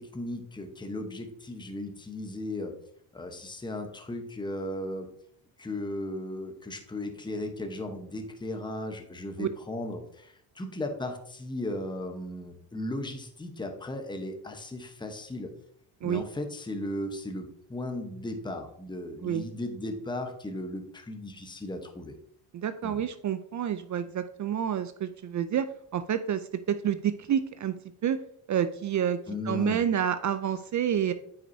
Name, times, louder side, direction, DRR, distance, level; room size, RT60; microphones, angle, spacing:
voice 1, 0.0-2.8 3.1-5.1 5.6-15.5 16.0-22.1 22.8-23.0 29.3-29.8, left 1 dB, 10° left, 5 dB, 1.0 m, -36 dB
voice 2, 22.5-27.8 28.0-28.2 28.5-29.2 29.4-31.1, right 9 dB, 40° right, 11 dB, 0.4 m, -28 dB
8.9 x 6.0 x 2.7 m, 0.67 s
cardioid pair, 100°, 47 cm